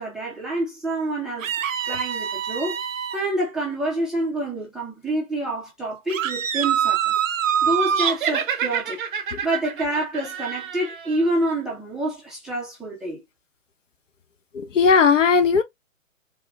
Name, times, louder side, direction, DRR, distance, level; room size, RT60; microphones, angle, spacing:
voice 1, 0.0-1.6 1.9-2.8 3.1-7.2 7.6-9.0 9.4-13.2, right 1 dB, ahead, 0.6 m, -27 dB
sound 1, 1.4-3.2 6.1-8.2, right 8 dB, 70° right, 0.6 m, -24 dB
sound 2, 7.9-11.3, right 7 dB, 40° right, 0.8 m, -29 dB
voice 2, 14.5-15.6, left 5 dB, 65° left, 0.8 m, -17 dB
3.4 x 2.8 x 2.2 m
figure-of-eight pair, 130°, 40 cm